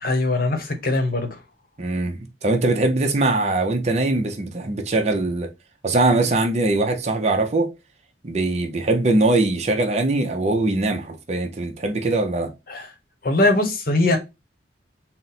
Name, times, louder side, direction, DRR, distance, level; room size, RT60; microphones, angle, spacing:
voice 1, 0.0-1.4 12.7-12.9 13.2-14.2, left 2 dB, 50° left, 0.9 m, -21 dB
voice 2, 1.8-5.5 5.8-7.7 8.2-12.5, right 2 dB, 35° right, 0.6 m, -21 dB
4.1 x 2.1 x 4.0 m
head